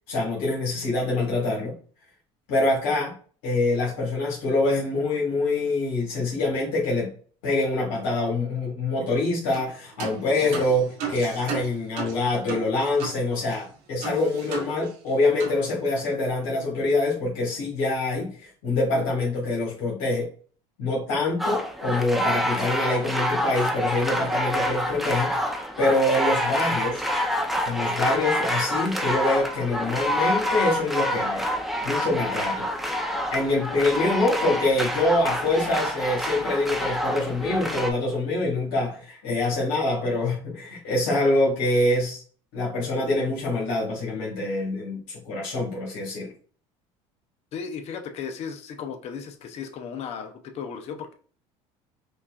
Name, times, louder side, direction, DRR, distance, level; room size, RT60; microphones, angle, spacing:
voice 1, 0.1-1.7 2.5-3.1 3.4-7.1 7.4-20.3 20.8-25.3 25.8-27.0 27.6-31.4 31.8-32.7 33.3-42.2 42.5-46.3, left 2 dB, 85° left, -4 dB, 1.4 m, -25 dB
sound 1, 9.5-9.7 10.0-13.2 13.5-13.6 14.0-15.1 15.4-15.6, right 6 dB, 75° right, 1.3 m, -35 dB
sound 2, 21.4-37.9, equal, ahead, 0.6 m, -27 dB
voice 2, 47.5-51.1, left 6 dB, 50° left, 6 dB, 0.6 m, -35 dB
5.4 x 2.4 x 2.3 m, 0.43 s
supercardioid pair, 100°, 14 cm